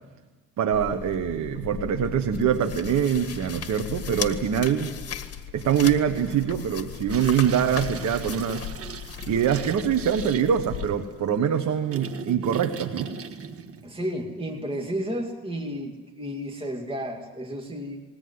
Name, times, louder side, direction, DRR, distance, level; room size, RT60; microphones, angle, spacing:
voice 1, 0.6-4.9 5.5-8.8 9.3-13.1, right 8 dB, 65° right, 6 dB, 1.4 m, -24 dB
sound 1, 0.7-10.9, left 9 dB, 50° left, 1.9 m, -37 dB
sound 2, 7.1-14.7, right 6 dB, 50° right, 1.6 m, -39 dB
voice 2, 13.8-18.0, equal, 20° right, 2 dB, 2.3 m, -32 dB
21.0 x 18.0 x 9.6 m, 1.3 s
cardioid pair, 90°, 30 cm